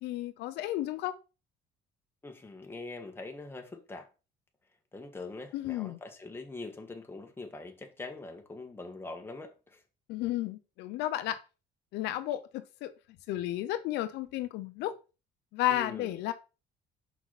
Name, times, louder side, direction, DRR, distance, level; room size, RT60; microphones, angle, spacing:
voice 1, 0.0-1.1 5.5-6.0 10.1-11.4 11.9-12.9 13.3-14.9 15.5-16.3, left 14 dB, 85° left, 0.7 m, -32 dB
voice 2, 2.2-4.1 4.9-9.8 15.7-16.2, left 3 dB, 15° left, 1.6 m, -43 dB
5.9 x 5.9 x 4.1 m
cardioid pair, 110°, 17 cm